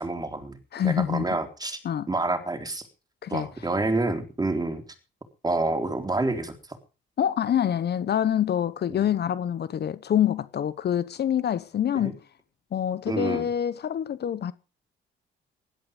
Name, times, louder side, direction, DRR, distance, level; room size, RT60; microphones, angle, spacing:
voice 1, 0.0-0.6 0.8-1.8 2.1-2.8 3.3-4.8 5.4-6.5 8.9-9.0 12.0-12.1 13.1-13.5, right 2 dB, 20° right, 3.9 m, -28 dB
voice 2, 0.7-1.2 1.8-2.1 3.2-3.5 7.2-12.2 12.7-14.5, left 9 dB, 55° left, 1.0 m, -26 dB
16.5 x 12.5 x 5.2 m
cardioid pair, 90°, 20 cm